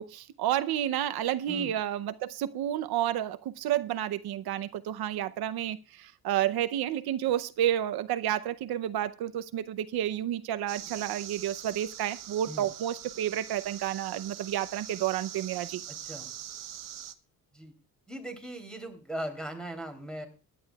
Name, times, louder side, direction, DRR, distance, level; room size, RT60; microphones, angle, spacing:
voice 1, 0.0-15.8, right 11 dB, 85° right, 0.7 m, -30 dB
sound 1, 10.7-17.1, right 10 dB, 60° right, 1.0 m, -43 dB
voice 2, 18.1-20.3, right 1 dB, ahead, 3.1 m, -39 dB
22.0 x 10.5 x 2.3 m
cardioid pair, 145°, 36 cm